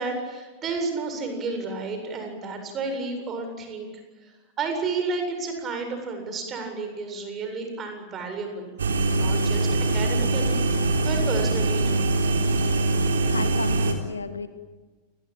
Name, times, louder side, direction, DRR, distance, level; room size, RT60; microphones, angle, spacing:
voice 1, 0.0-3.9 4.2-8.7 9.1-12.1, right 3 dB, 30° right, 5 dB, 7.8 m, -31 dB
sound 1, 8.8-13.9, right 2 dB, 70° right, 3.8 m, -23 dB
voice 2, 13.3-14.5, left 4 dB, 75° left, 11 dB, 2.0 m, -33 dB
29.0 x 21.0 x 9.1 m, 1.3 s
figure-of-eight pair, 90°, 0 cm